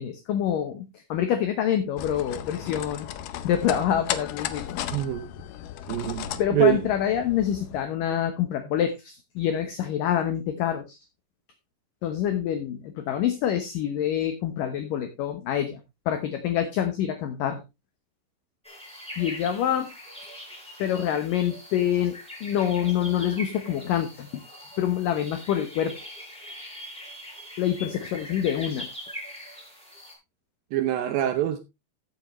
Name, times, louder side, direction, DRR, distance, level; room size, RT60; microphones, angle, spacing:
voice 1, 0.0-3.1 3.4-4.8 6.4-11.0 12.0-15.8 16.1-17.6 19.2-19.9 20.8-24.4 24.8-26.0 27.6-28.9, left 10 dB, 70° left, 2.3 m, -26 dB
sound 1, 2.0-7.8, left 11 dB, 85° left, 1.9 m, -35 dB
voice 2, 4.9-5.3 5.9-6.8 30.7-31.6, right 12 dB, 80° right, 2.1 m, -24 dB
sound 2, 18.6-30.1, equal, ahead, 4.2 m, -42 dB
14.5 x 7.6 x 3.1 m
omnidirectional pair, 4.9 m